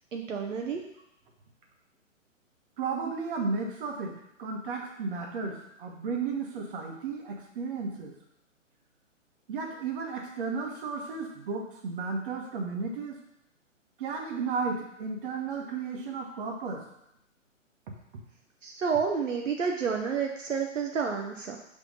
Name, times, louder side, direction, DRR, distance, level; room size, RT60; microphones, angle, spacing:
voice 1, 0.1-0.8 18.6-21.6, right 6 dB, 75° right, 1 dB, 0.9 m, -30 dB
voice 2, 2.8-8.1 9.5-13.2 14.0-16.9 17.9-18.0, right 4 dB, 45° right, 1 dB, 1.4 m, -34 dB
5.9 x 3.5 x 5.4 m, 0.80 s
figure-of-eight pair, 130°, 39 cm